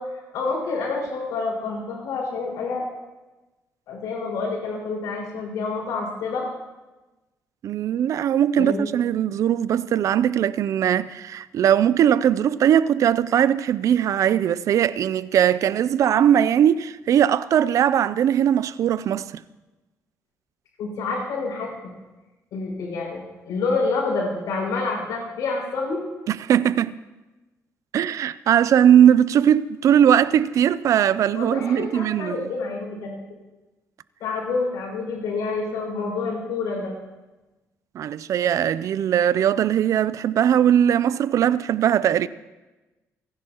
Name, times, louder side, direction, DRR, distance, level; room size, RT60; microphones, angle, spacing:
voice 1, 0.0-2.8 3.9-6.4 8.6-8.9 20.8-21.7 22.5-26.0 31.3-33.1 34.2-36.9, left 4 dB, 85° left, 5.7 m, -28 dB
voice 2, 7.6-19.3 26.3-27.0 27.9-32.5 37.9-42.3, right 9 dB, 65° right, 0.4 m, -20 dB
29.5 x 11.0 x 3.0 m
cardioid pair, 100°, 6 cm